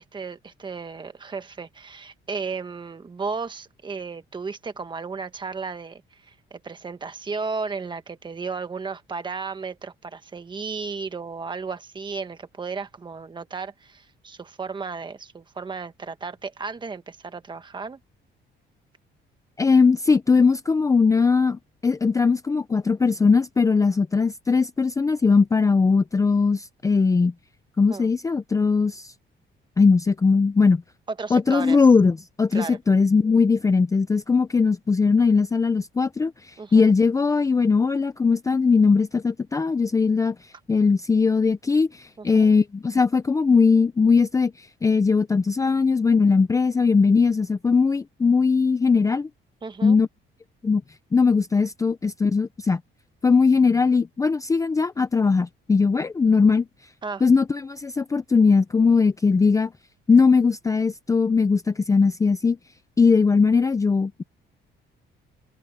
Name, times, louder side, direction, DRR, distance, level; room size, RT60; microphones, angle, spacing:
voice 1, 0.0-18.0 27.9-28.1 31.1-31.8 32.5-32.8 36.6-36.9 42.2-42.5 49.6-50.0 57.0-57.2, right 4 dB, 25° right, 1.4 m, -34 dB
voice 2, 19.6-27.3 27.8-29.1 29.8-30.8 31.3-49.3 49.8-50.1 50.6-50.8 51.1-52.8 53.2-56.7 57.2-59.7 60.1-62.6 63.0-64.2, left 4 dB, 15° left, 0.5 m, -20 dB
cardioid pair, 155°, 20 cm